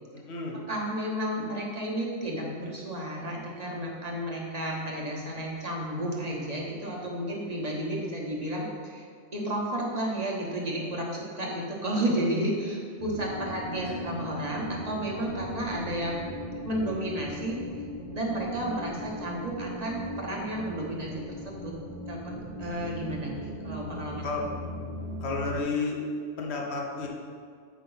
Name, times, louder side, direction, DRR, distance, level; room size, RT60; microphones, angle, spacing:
voice 1, 0.1-0.6 13.8-14.1 24.2-24.4 25.2-26.0 26.4-27.1, left 3 dB, 60° left, -1 dB, 1.3 m, -32 dB
voice 2, 0.7-9.0 9.3-16.2 16.6-17.8 18.1-21.8 22.1-22.3 22.6-24.2, right 1 dB, 35° right, -3 dB, 1.2 m, -32 dB
sound 1, 13.0-25.6, equal, 35° left, 1.0 m, -38 dB
8.5 x 5.4 x 3.9 m, 2.2 s
omnidirectional pair, 1.3 m